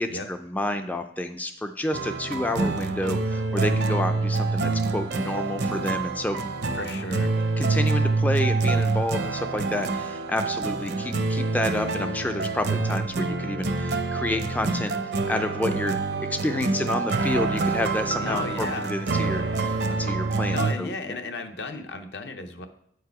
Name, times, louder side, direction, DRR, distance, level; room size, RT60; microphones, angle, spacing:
voice 1, 0.0-6.4 7.6-16.0 16.3-21.2, left 1 dB, 10° left, 7 dB, 0.3 m, -29 dB
sound 1, 1.9-20.7, right 3 dB, 70° right, 0.6 m, -26 dB
voice 2, 6.7-7.4 18.2-18.9 19.8-20.0 20.5-22.7, left 3 dB, 70° left, 7 dB, 0.8 m, -34 dB
8.6 x 4.7 x 4.6 m, 0.69 s
head